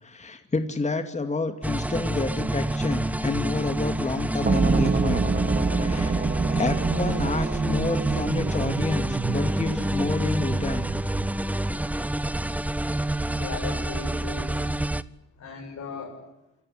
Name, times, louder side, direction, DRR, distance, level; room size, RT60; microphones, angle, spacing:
voice 1, 0.0-5.3 5.7-6.2 6.5-10.9, left 3 dB, 25° left, 7 dB, 2.5 m, -29 dB
sound 1, 1.6-15.0, right 1 dB, 5° right, 0.8 m, -28 dB
sound 2, 4.5-11.4, right 4 dB, 30° right, 2.1 m, -27 dB
voice 2, 13.3-14.7 15.4-16.2, left 4 dB, 65° left, -2 dB, 7.4 m, -37 dB
27.5 x 15.5 x 9.4 m, 0.94 s
cardioid pair, 90°, 30 cm